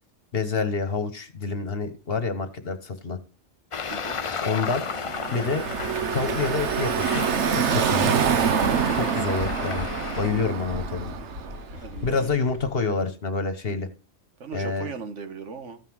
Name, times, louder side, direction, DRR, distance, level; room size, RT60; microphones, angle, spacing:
voice 1, 0.3-3.2 4.4-4.9 5.3-5.7 6.1-7.2 7.5-8.3 8.9-11.2 12.0-13.9 14.5-14.9, left 4 dB, 55° left, 10 dB, 1.5 m, -28 dB
Traffic noise roadway noise, 3.7-10.3, left 5 dB, 40° left, 0.5 m, -34 dB
voice 2, 3.9-4.2 8.8-9.2 11.7-12.5 14.4-15.8, right 5 dB, 90° right, 9 dB, 1.6 m, -38 dB
Car passing by / Traffic noise roadway noise, 4.8-11.8, right 7 dB, 70° right, 1.2 m, -26 dB
Waves surf, 5.5-12.8, left 3 dB, 55° right, 2.4 m, -39 dB
14.0 x 5.7 x 6.3 m, 0.34 s
omnidirectional pair, 1.2 m